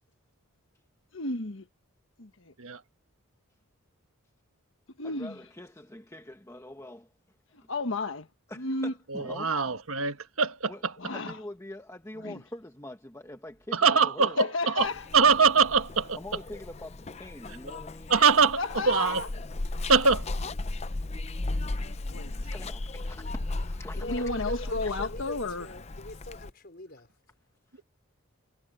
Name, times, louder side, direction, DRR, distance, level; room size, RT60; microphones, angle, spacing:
voice 1, 1.1-1.7 2.2-2.5 5.0-5.4 7.5-8.3 8.6-8.9 11.0-11.4 12.2-12.4 14.4-15.1 18.6-19.3 21.8-22.4 24.0-25.7, left 2 dB, 65° left, 1.4 m, -32 dB
voice 2, 5.0-7.1 7.6-7.7 8.5-9.8 10.7-10.8 11.1-14.4 16.1-18.1 21.8-25.1, left 1 dB, 15° left, 1.2 m, -44 dB
voice 3, 9.1-10.9 13.7-14.9 15.1-16.2 18.1-18.6 18.9-19.2 19.9-20.3, right 5 dB, 80° right, 1.5 m, -23 dB
Zipper (clothing), 14.8-26.5, left 2 dB, 30° left, 0.6 m, -36 dB
voice 4, 24.0-27.1, left 1 dB, 45° left, 5.0 m, -41 dB
head